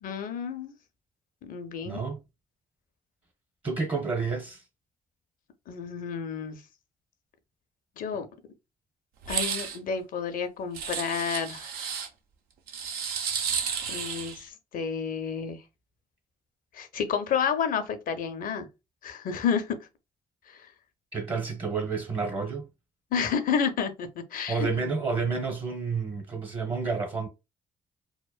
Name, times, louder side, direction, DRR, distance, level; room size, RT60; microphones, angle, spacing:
voice 1, 0.0-0.7 1.4-2.0 5.7-6.6 8.0-8.3 9.3-11.7 13.9-15.6 16.7-18.7 19.0-19.9 20.5-20.7 23.1-24.9, left 6 dB, 65° left, 0.6 m, -30 dB
voice 2, 1.9-2.2 3.6-4.6 21.1-22.6 24.5-27.3, right 4 dB, 35° right, 0.9 m, -30 dB
sound 1, 9.2-9.8 10.8-12.1 12.7-14.4, right 7 dB, 80° right, 0.5 m, -32 dB
2.9 x 2.1 x 2.3 m
supercardioid pair, 55°, 15 cm